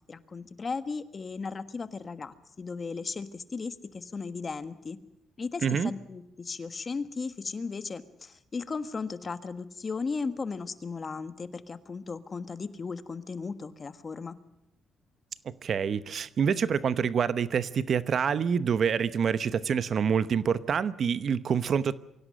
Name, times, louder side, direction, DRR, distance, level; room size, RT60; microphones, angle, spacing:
voice 1, 0.1-5.0 5.4-14.4, left 4 dB, 35° left, 1.4 m, -36 dB
voice 2, 15.4-21.9, right 7 dB, 55° right, 0.9 m, -27 dB
24.0 x 17.0 x 7.7 m
cardioid pair, 90°, 0 cm